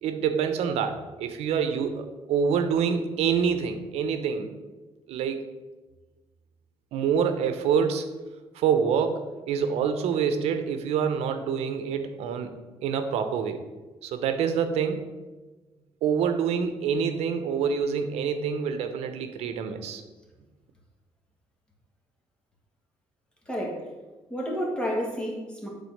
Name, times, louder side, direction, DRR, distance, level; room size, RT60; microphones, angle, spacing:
voice 1, 0.0-4.5 5.1-5.4 6.9-8.1 8.5-13.6 14.0-15.0 16.0-20.0, right 7 dB, 85° right, 7 dB, 0.8 m, -26 dB
voice 2, 23.5-23.9 24.3-25.7, equal, 10° left, -2 dB, 1.9 m, -30 dB
8.3 x 4.0 x 6.5 m, 1.2 s
cardioid pair, 140°, 10 cm